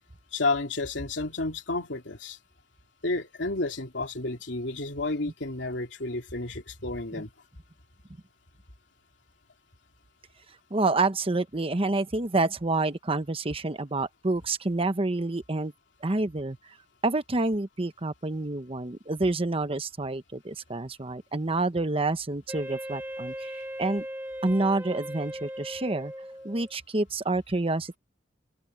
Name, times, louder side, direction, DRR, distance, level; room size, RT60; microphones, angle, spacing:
voice 1, 0.3-2.4 3.0-7.3, left 2 dB, 70° left, 3.0 m, -31 dB
voice 2, 10.7-15.7 16.0-16.8 17.0-24.1 24.4-26.1 26.4-28.0, right 2 dB, 30° right, 1.0 m, -28 dB
Wind instrument woodwind instrument, 22.5-26.7, equal, 10° right, 1.7 m, -38 dB
head